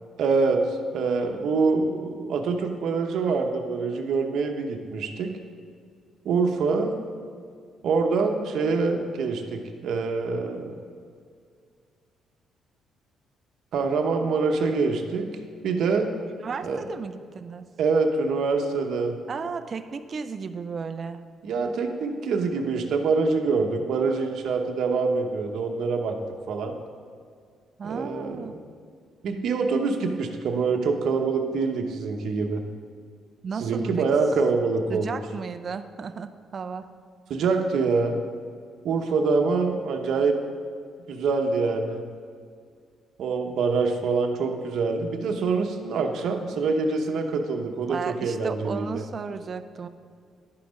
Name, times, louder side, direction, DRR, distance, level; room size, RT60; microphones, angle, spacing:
voice 1, 0.2-0.6 0.9-5.3 6.2-7.0 7.8-10.8 13.7-15.3 15.6-16.1 16.6-16.8 17.8-19.2 21.4-26.2 26.5-26.8 27.8-28.5 29.2-32.6 33.6-35.2 37.3-38.2 38.8-40.4 41.1-42.0 43.2-49.0, right 4 dB, 65° right, 4 dB, 0.9 m, -25 dB
voice 2, 16.4-17.7 19.3-21.2 27.8-28.6 33.4-34.1 34.9-36.9 47.9-49.9, right 5 dB, 35° right, 10 dB, 0.4 m, -34 dB
11.0 x 5.8 x 5.2 m, 2.2 s
cardioid pair, 145°, 0 cm